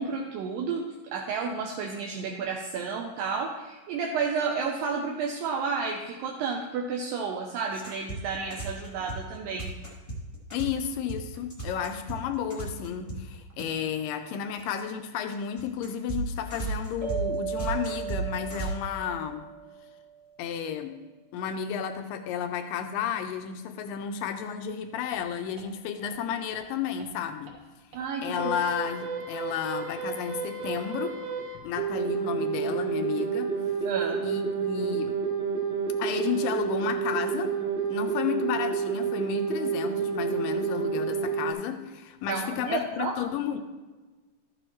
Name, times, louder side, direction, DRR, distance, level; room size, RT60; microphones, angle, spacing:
voice 1, 0.0-9.7 27.9-28.5 33.9-34.2 42.3-43.1, right 5 dB, 75° right, 1 dB, 2.3 m, -31 dB
sound 1, 7.7-13.1 13.5-13.6 14.5-18.7, right 3 dB, 15° left, 1.2 m, -34 dB
voice 2, 10.5-19.5 20.4-21.0 21.3-27.6 28.2-31.2 31.6-33.6 34.2-35.1 36.0-37.6 37.9-43.6, left 8 dB, 80° left, 7 dB, 2.1 m, -32 dB
sound 2, 17.0-20.0, right 7 dB, 30° right, 1.6 m, -36 dB
sound 3, 25.1-25.2 25.6-25.7 26.0-26.1 26.5-26.6 27.0-27.1 27.5-27.6 27.9-28.0 28.4-41.5, right 6 dB, 55° right, 1.6 m, -30 dB
12.5 x 7.9 x 3.1 m, 1.3 s
omnidirectional pair, 4.3 m